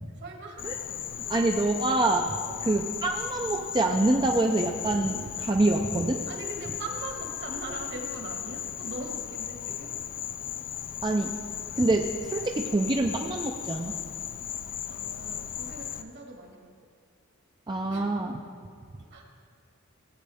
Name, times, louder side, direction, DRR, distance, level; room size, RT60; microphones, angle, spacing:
voice 1, 0.2-0.7 1.2-1.5 2.4-2.7 6.3-9.9 14.9-16.7 17.9-18.2 19.1-19.2, right 2 dB, 60° right, 1 dB, 1.8 m, -41 dB
Insect, 0.6-16.0, left 10 dB, 45° left, 0.4 m, -36 dB
voice 2, 1.3-2.3 2.6-6.2 11.0-11.3 11.8-14.0 17.7-18.4, right 2 dB, 20° right, 1 dB, 0.5 m, -26 dB
17.5 x 8.5 x 3.5 m, 2.3 s
head